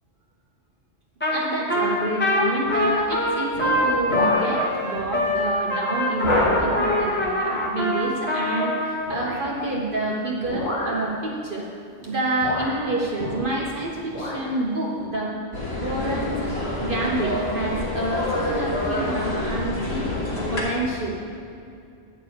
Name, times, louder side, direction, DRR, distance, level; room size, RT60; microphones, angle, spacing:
Trumpet, 1.2-1.4 1.7-9.1, left 1 dB, 10° left, 1.2 m, -24 dB
voice 1, 1.3-11.7 12.0-15.4 15.8-20.1 20.5-21.2, right 2 dB, 50° right, -3 dB, 1.0 m, -28 dB
sound 1, 1.8-2.1 2.6-3.0 3.5-4.6 5.0-5.2 5.5-5.6 6.2-7.1 9.0-9.5 10.4-11.1 12.0-12.1 12.4-13.8 14.0-14.5 15.0-15.1, left 1 dB, 80° left, 2.0 m, -28 dB
sound 2, 15.5-20.6, left 1 dB, 60° left, 2.1 m, -27 dB
9.8 x 4.7 x 7.9 m, 2.4 s
omnidirectional pair, 1.2 m